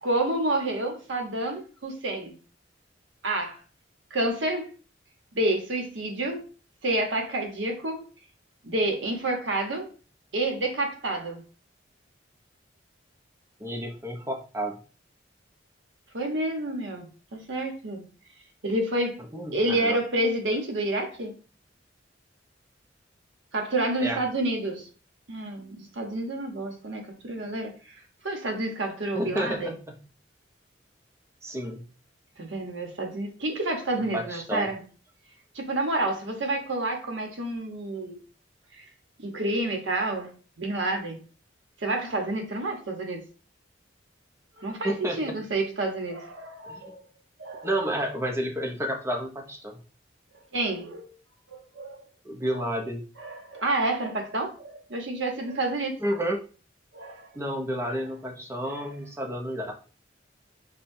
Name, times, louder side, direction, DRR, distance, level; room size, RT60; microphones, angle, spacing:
voice 1, 0.0-2.3 3.2-3.6 4.1-4.7 5.3-6.4 6.8-8.0 8.6-9.9 10.3-11.4 16.1-18.0 18.6-19.2 19.5-21.3 23.5-24.9 25.3-27.9 28.2-29.7 32.4-34.8 35.5-38.2 38.8-38.9 39.2-40.3 40.6-41.2 41.8-43.2 44.6-47.0 47.4-47.7 50.5-51.0 51.5-52.0 52.5-52.7 53.2-56.0 56.9-57.3 57.8-58.0 58.7-58.9, right 2 dB, 80° right, 2 dB, 1.0 m, -29 dB
voice 2, 13.6-14.8 19.3-20.0 24.0-24.2 29.1-30.0 31.4-31.8 34.1-34.7 44.8-45.4 46.7-46.8 47.6-49.8 52.2-53.0 56.0-56.4 57.3-59.7, right 1 dB, 15° right, 1 dB, 0.6 m, -30 dB
5.7 x 2.2 x 2.6 m, 0.37 s
head